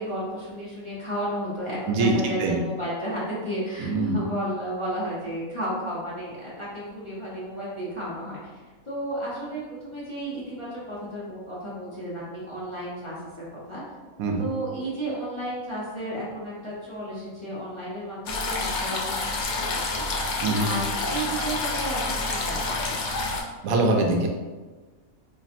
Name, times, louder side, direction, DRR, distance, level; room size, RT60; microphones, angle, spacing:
voice 1, 0.0-8.5 8.8-13.8 14.4-20.0 20.6-23.1, right 1 dB, 25° left, -9 dB, 0.8 m, -33 dB
voice 2, 1.9-2.6 3.8-4.2 14.2-14.5 20.4-20.7 23.6-24.3, right 2 dB, 80° right, 2 dB, 1.0 m, -23 dB
sound 1, 18.3-23.4, left 3 dB, 90° left, 0.4 m, -28 dB
4.1 x 3.1 x 2.5 m, 1.3 s
omnidirectional pair, 1.5 m